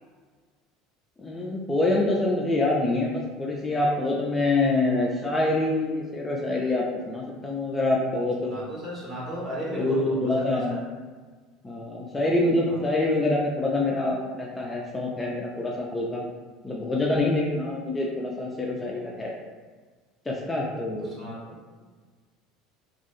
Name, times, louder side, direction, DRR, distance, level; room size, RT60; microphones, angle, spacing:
voice 1, 1.2-8.5 9.7-10.8 11.6-16.2 16.6-19.3 20.3-21.1, left 2 dB, 20° left, -3 dB, 0.4 m, -26 dB
voice 2, 8.5-10.8 12.7-12.8 21.2-21.5, equal, 35° right, -6 dB, 1.3 m, -35 dB
2.5 x 2.3 x 2.6 m, 1.5 s
hypercardioid pair, 85°, 0 cm